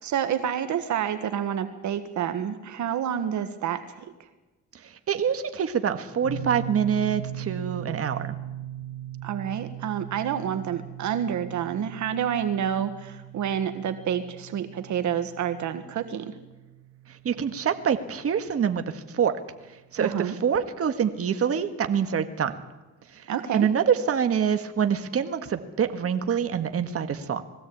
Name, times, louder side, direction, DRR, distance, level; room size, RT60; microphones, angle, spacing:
voice 1, 0.0-3.9 9.2-16.3 20.0-20.3 23.3-23.7, right 9 dB, 70° right, 9 dB, 1.6 m, -28 dB
voice 2, 4.8-8.4 17.1-19.3 19.9-22.5 23.1-23.3 23.5-27.4, right 7 dB, 50° right, 7 dB, 1.8 m, -26 dB
sound 1, 6.2-19.1, right 9 dB, 70° left, 2.5 m, -39 dB
21.5 x 16.0 x 8.7 m, 1.1 s
cardioid pair, 90°, 30 cm